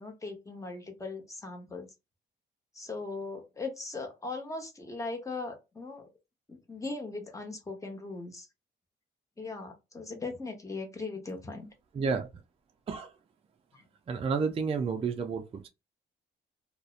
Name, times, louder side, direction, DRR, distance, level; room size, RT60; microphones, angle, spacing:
voice 1, 0.0-1.9 2.7-6.1 6.5-8.5 9.4-11.7 13.7-13.8, left 3 dB, 15° left, 0.8 m, -39 dB
voice 2, 11.9-12.3 12.9-13.1 14.1-15.7, right 5 dB, 30° right, 0.4 m, -30 dB
2.6 x 2.1 x 2.4 m
cardioid pair, 90°, 20 cm